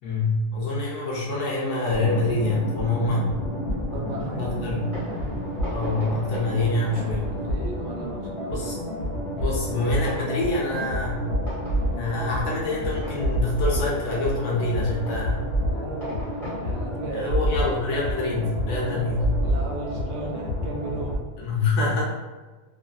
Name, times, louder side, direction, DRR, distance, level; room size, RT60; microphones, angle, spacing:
voice 1, 0.0-3.3 4.4-4.9 5.7-7.3 8.5-8.8 9.4-11.3 12.0-15.4 17.1-19.4 21.4-22.0, left 2 dB, 70° left, -4 dB, 1.0 m, -26 dB
sound 1, 1.9-21.2, equal, 45° left, 0.9 m, -29 dB
voice 2, 3.9-4.9 7.2-8.8 15.6-16.3 16.6-17.4 19.4-21.2, right 2 dB, 80° right, 0 dB, 1.1 m, -36 dB
Fireworks, 4.7-18.8, right 1 dB, 25° right, 1.1 m, -42 dB
2.9 x 2.5 x 2.4 m, 1.3 s
omnidirectional pair, 1.9 m